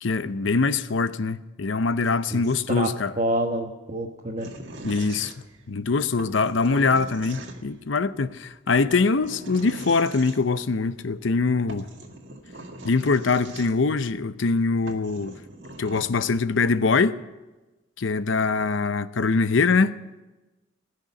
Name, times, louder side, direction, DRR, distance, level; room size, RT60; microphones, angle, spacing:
voice 1, 0.0-3.1 4.8-5.3 5.7-11.9 12.8-15.3 15.8-17.2 18.0-20.0, left 4 dB, 70° left, 0.6 m, -23 dB
voice 2, 3.2-4.5, right 1 dB, 35° right, 1.1 m, -27 dB
sound 1, 4.4-5.7 6.2-7.8 8.9-10.4 11.4-11.5 11.7-14.0 14.5-14.6 14.9-16.0, right 2 dB, 65° right, 1.7 m, -41 dB
19.5 x 6.6 x 10.0 m
head